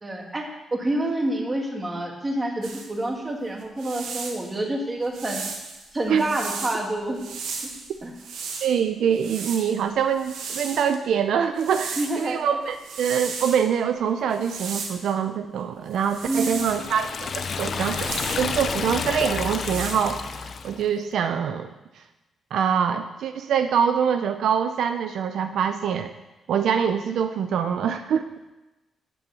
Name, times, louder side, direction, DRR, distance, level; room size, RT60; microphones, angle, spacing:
voice 1, 0.0-0.5 0.7-5.4 5.9-7.2 8.0-8.1 12.0-12.4 16.3-16.6, right 1 dB, 20° right, 2 dB, 1.6 m, -27 dB
sound 1, 2.6-2.9 3.6-4.4 5.1-6.8 7.2-8.7 9.1-10.9 11.6-12.3 12.6-13.6 14.3-15.1 15.9-16.9 17.7-18.5 19.3-19.9, right 5 dB, 90° right, 1.5 m, -35 dB
voice 2, 8.6-22.0 22.5-26.1 26.5-28.2, right 7 dB, 70° right, 8 dB, 0.5 m, -24 dB
Liquid, 16.2-20.8, left 5 dB, 40° left, 0.5 m, -30 dB
8.6 x 8.0 x 7.0 m, 1.0 s
cardioid pair, 155°, 0 cm